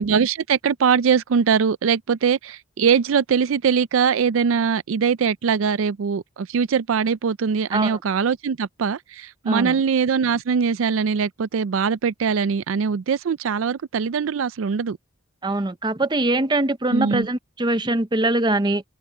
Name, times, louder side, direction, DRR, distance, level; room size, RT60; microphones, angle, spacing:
voice 1, 0.0-15.0 16.9-17.3, right 6 dB, 75° right, 0.4 m, -22 dB
voice 2, 15.4-18.8, right 2 dB, 20° right, 0.7 m, -22 dB
open air
head